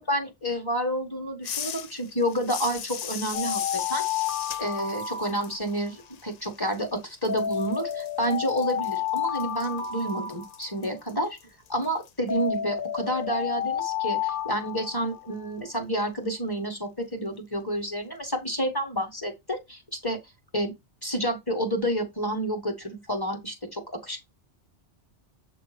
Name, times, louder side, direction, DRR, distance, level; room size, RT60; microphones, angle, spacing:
voice 1, 0.0-4.0 4.6-11.4 11.7-20.2 20.5-20.7 21.0-24.2, equal, 20° left, 1.4 m, -29 dB
sound 1, 1.4-7.0 7.3-12.1, left 8 dB, 65° left, 0.4 m, -39 dB
Alarm, 3.3-5.9 7.3-10.9 12.3-15.5, left 9 dB, 50° left, 1.2 m, -31 dB
7.4 x 2.9 x 5.0 m
omnidirectional pair, 1.2 m